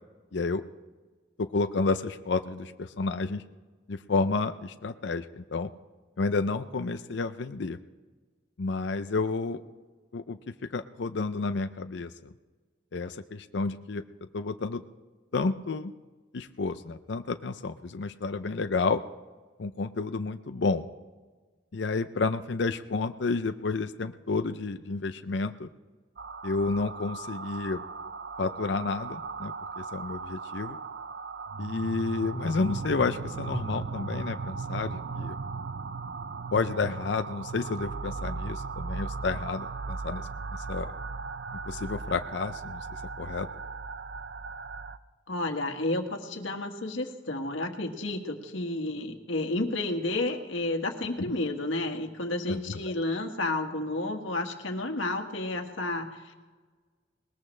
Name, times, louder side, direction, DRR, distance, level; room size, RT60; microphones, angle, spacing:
voice 1, 0.3-0.6 1.4-3.4 3.9-5.7 6.2-7.8 8.6-9.6 10.1-12.1 12.9-14.0 14.3-14.8 15.3-15.9 16.3-19.0 19.6-20.9 21.7-25.7 26.4-27.8 28.4-30.8 31.6-35.4 36.5-40.2 40.6-40.9 41.7-42.8 43.2-43.5 51.3-51.4 52.5-52.9, left 4 dB, 65° left, 9 dB, 0.5 m, -30 dB
sound 1, 26.2-45.0, right 4 dB, 60° right, 0.5 m, -37 dB
voice 2, 45.3-56.3, left 2 dB, 85° left, 4 dB, 1.7 m, -31 dB
20.0 x 20.0 x 3.3 m, 1.4 s
head